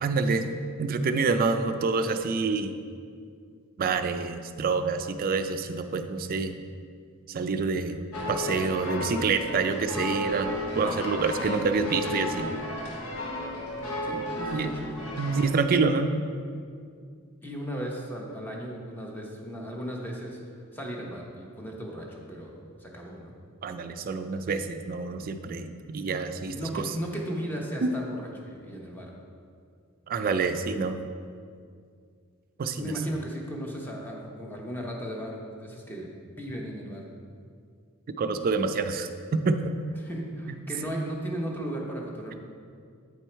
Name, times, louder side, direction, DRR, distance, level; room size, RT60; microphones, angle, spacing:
voice 1, 0.0-0.4 0.8-2.8 3.8-6.6 7.3-8.0 8.3-12.5 14.5-14.7 15.2-16.1 23.6-26.8 27.8-27.9 30.1-31.0 32.6-32.9 38.2-39.7, right 4 dB, 45° right, 9 dB, 0.4 m, -27 dB
sound 1, 8.1-15.5, left 1 dB, 80° left, 1.0 m, -33 dB
voice 2, 14.0-15.0 17.4-20.4 20.7-23.3 26.5-29.2 32.8-37.1 40.0-42.4, equal, 10° left, -1 dB, 0.9 m, -36 dB
8.4 x 4.6 x 4.4 m, 2.2 s
head